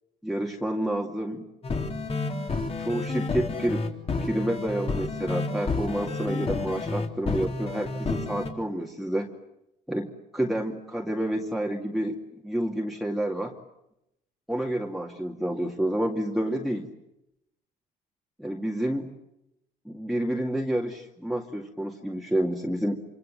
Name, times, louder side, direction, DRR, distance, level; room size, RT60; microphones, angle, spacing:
voice 1, 0.2-1.4 2.8-3.9 4.2-9.3 9.9-12.2 12.4-13.5 14.5-16.9 18.4-19.1 19.9-23.0, right 1 dB, ahead, 0 dB, 2.3 m, -29 dB
sound 1, 1.6-8.5, left 3 dB, 35° left, 3.8 m, -30 dB
27.0 x 26.0 x 7.7 m, 0.85 s
cardioid pair, 110°, 17 cm